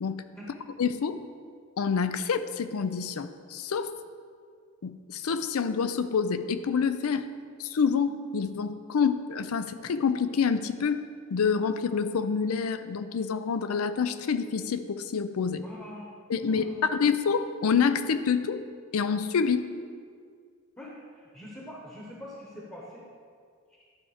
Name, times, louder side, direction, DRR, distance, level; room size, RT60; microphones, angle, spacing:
voice 1, 0.8-1.2 1.8-3.9 4.8-7.3 7.6-11.0 11.3-15.7 16.3-18.6 18.9-19.7, left 6 dB, 90° left, 11 dB, 0.5 m, -27 dB
voice 2, 15.6-16.1 16.4-16.9 20.8-23.0, left 1 dB, 15° left, -4 dB, 1.0 m, -44 dB
11.5 x 4.4 x 4.9 m, 2.1 s
head